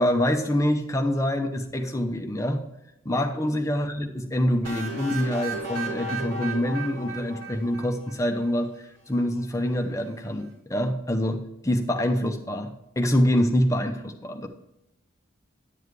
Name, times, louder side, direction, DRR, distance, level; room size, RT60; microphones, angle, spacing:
voice 1, 0.0-2.6 3.0-8.7 9.1-14.5, left 1 dB, 15° left, 4 dB, 0.7 m, -25 dB
sound 1, 4.6-8.4, right 3 dB, 80° right, 2.6 m, -35 dB
10.5 x 7.3 x 3.2 m, 0.88 s
head